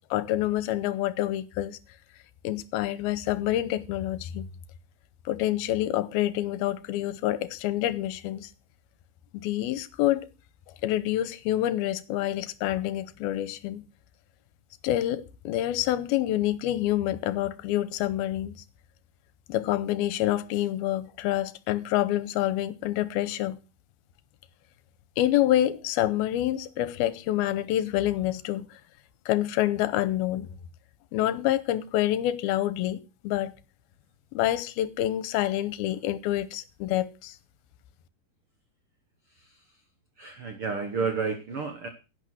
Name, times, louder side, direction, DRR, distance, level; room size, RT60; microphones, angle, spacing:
voice 1, 0.1-1.8 2.4-4.5 5.3-8.5 9.3-10.3 10.8-13.8 14.8-18.6 19.5-23.6 25.2-28.8 29.3-30.5 31.1-33.5 34.3-37.4, left 13 dB, 85° left, 2.7 m, -27 dB
voice 2, 40.2-41.9, right 5 dB, 85° right, 1.2 m, -30 dB
11.0 x 8.9 x 6.3 m
omnidirectional pair, 4.4 m